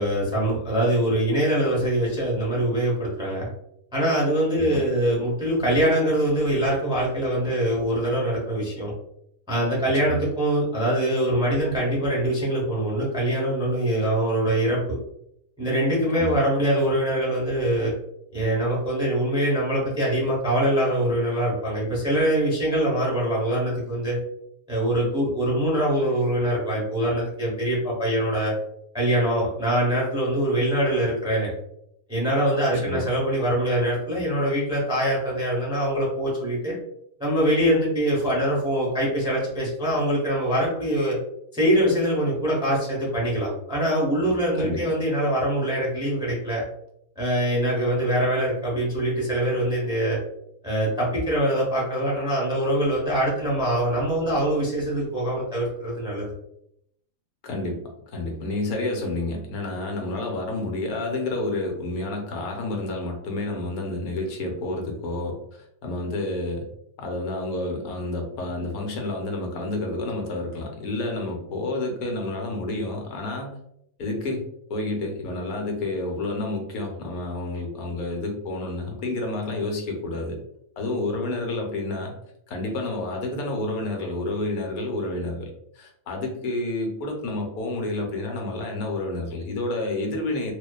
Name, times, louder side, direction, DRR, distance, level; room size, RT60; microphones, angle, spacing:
voice 1, 0.0-3.5 3.9-8.9 9.5-15.0 15.6-17.9 18.3-24.2 24.7-28.5 28.9-31.5 32.1-36.7 37.2-41.2 41.5-46.6 47.2-50.2 50.6-56.3, right 1 dB, 5° right, -5 dB, 0.5 m, -23 dB
voice 2, 32.7-33.1 44.6-44.9 57.4-57.8 58.1-66.7 67.0-73.6 74.0-80.4 80.8-82.1 82.5-90.5, left 2 dB, 90° left, 2 dB, 1.1 m, -29 dB
2.5 x 2.2 x 2.2 m, 0.74 s
omnidirectional pair, 1.5 m